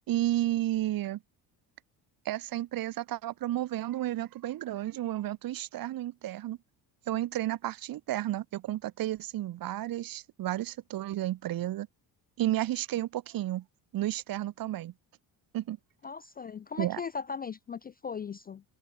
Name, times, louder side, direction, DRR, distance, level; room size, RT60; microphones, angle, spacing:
voice 1, 0.1-1.2 2.2-6.6 7.1-11.9 12.4-13.6 13.9-14.9 15.5-15.8 16.8-17.0, right 14 dB, 55° right, 0.9 m, -32 dB
voice 2, 16.0-18.6, left 6 dB, 25° left, 0.3 m, -38 dB
open air
supercardioid pair, 85°, 43 cm